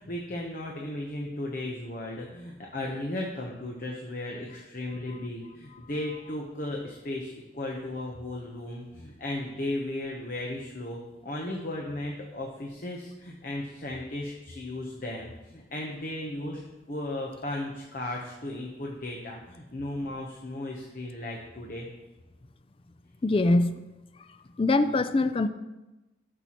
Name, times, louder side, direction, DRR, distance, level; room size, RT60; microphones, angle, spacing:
voice 1, 0.0-21.9, left 1 dB, 45° left, -1 dB, 0.9 m, -35 dB
voice 2, 23.2-23.8 24.3-25.5, left 2 dB, 30° left, 11 dB, 0.4 m, -24 dB
12.5 x 6.8 x 3.0 m, 1.1 s
head